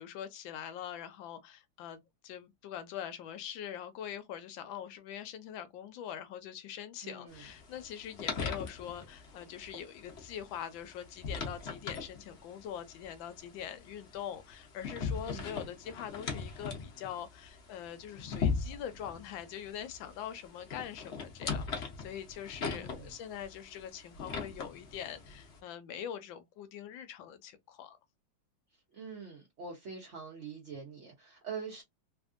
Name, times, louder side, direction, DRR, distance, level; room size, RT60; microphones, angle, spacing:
voice 1, 0.0-28.0, left 9 dB, 75° left, 1.3 m, -43 dB
voice 2, 7.0-7.5 15.2-15.7 22.7-23.1 28.9-31.8, right 5 dB, 55° right, 0.8 m, -45 dB
sound 1, 7.3-25.6, left 5 dB, 50° left, 0.8 m, -40 dB
3.4 x 2.6 x 2.5 m
omnidirectional pair, 2.3 m